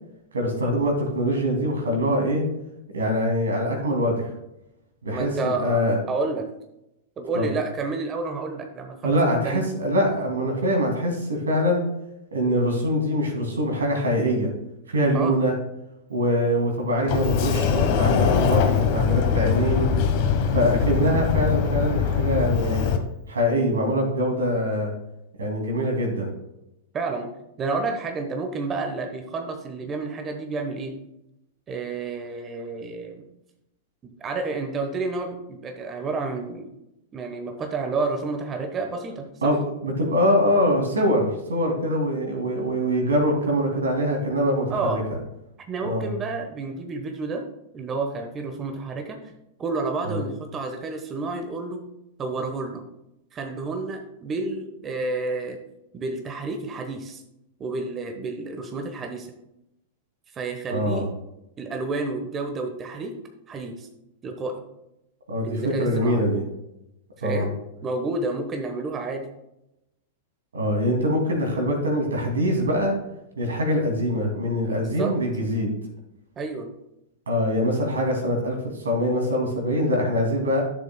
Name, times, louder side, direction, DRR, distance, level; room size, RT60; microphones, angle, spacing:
voice 1, 0.3-2.4 2.9-4.3 5.0-6.0 7.3-7.5 9.0-11.8 12.3-14.5 14.9-15.5 16.1-19.9 20.5-22.9 23.3-24.9 25.4-26.3 39.4-39.6 39.8-45.0 45.8-46.1 50.0-50.2 60.7-61.1 65.3-66.4 67.2-67.5 70.5-73.0 73.4-75.7 77.3-80.6, equal, 85° right, 2 dB, 2.4 m, -23 dB
voice 2, 5.1-6.5 7.2-9.2 9.4-9.6 15.1-15.3 26.9-27.3 27.6-30.9 31.7-33.2 34.2-36.7 37.1-39.5 44.7-45.0 45.7-47.4 47.7-49.2 49.6-51.8 52.2-52.9 53.3-55.6 55.9-57.2 57.6-59.3 60.3-61.1 61.6-63.2 63.5-63.9 64.2-64.6 65.4-66.2 67.2-67.5 67.8-69.3 74.8-75.1 76.4-76.7, right 3 dB, 25° right, 5 dB, 1.0 m, -30 dB
Sliding door, 17.1-23.0, left 6 dB, 55° left, 1.1 m, -22 dB
11.5 x 6.8 x 2.2 m, 0.87 s
hypercardioid pair, 100°, 0 cm